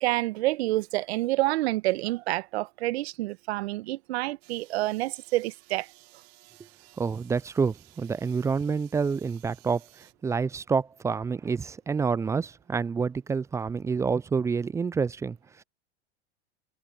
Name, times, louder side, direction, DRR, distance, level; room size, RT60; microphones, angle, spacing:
voice 1, 0.0-5.9, right 18 dB, 65° right, 1.3 m, -28 dB
sound 1, 4.4-10.1, right 20 dB, 50° right, 6.6 m, -57 dB
voice 2, 7.0-15.6, right 5 dB, 10° right, 0.3 m, -28 dB
hypercardioid pair, 95°, 34 cm